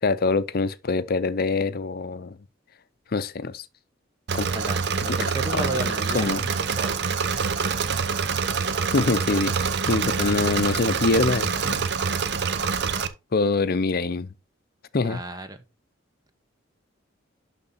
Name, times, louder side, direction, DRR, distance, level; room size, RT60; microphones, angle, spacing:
voice 1, 0.0-2.4 3.1-3.7 4.3-4.5 5.1-5.7 6.1-6.5 8.9-11.9 13.3-14.3 14.9-15.2, left 3 dB, 50° left, 0.6 m, -25 dB
Engine / Mechanisms, 4.3-13.1, right 5 dB, 60° right, 0.7 m, -26 dB
voice 2, 4.5-6.3 6.8-7.1 15.0-15.6, right 2 dB, 20° right, 0.8 m, -33 dB
11.5 x 4.0 x 4.1 m
head